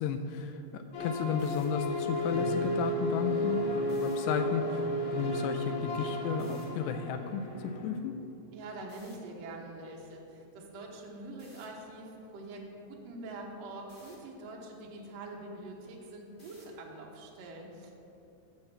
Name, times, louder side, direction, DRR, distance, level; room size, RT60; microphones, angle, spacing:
voice 1, 0.0-4.8 5.1-7.4 7.8-8.1, left 7 dB, 90° left, 7 dB, 2.7 m, -33 dB
sound 1, 0.9-7.9, left 1 dB, 65° left, 3.1 m, -33 dB
sound 2, 1.4-1.6 3.8-4.1 6.4-6.6 8.9-9.1 11.4-11.6 13.9-14.2 16.4-16.8, equal, 40° left, 0.7 m, -58 dB
voice 2, 8.5-17.9, right 2 dB, 70° right, -2 dB, 1.6 m, -45 dB
9.8 x 5.7 x 7.6 m, 2.8 s
omnidirectional pair, 4.9 m